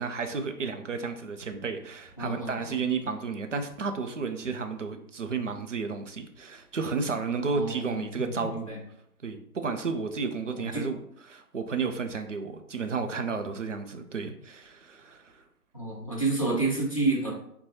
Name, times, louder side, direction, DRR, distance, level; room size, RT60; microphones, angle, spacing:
voice 1, 0.0-8.7 9.2-11.0 11.3-15.4, right 5 dB, 55° right, 6 dB, 0.5 m, -32 dB
voice 2, 2.2-2.8 7.5-8.8 10.5-10.8 15.7-17.3, right 3 dB, 20° left, -6 dB, 0.6 m, -30 dB
5.5 x 2.2 x 2.8 m, 0.73 s
figure-of-eight pair, 150°, 47 cm